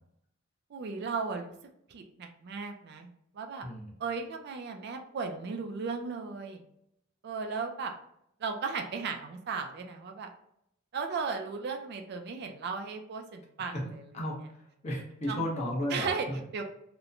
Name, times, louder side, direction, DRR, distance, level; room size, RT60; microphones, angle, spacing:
voice 1, 0.7-1.5 1.9-3.1 3.3-3.7 4.0-6.6 7.2-7.9 8.4-10.3 10.9-14.0 15.3-15.4 15.9-16.3 16.5-16.6, right 5 dB, 55° right, 5 dB, 0.4 m, -35 dB
voice 2, 14.1-16.4, left 1 dB, 35° left, -2 dB, 0.8 m, -34 dB
2.8 x 2.1 x 2.4 m, 0.75 s
head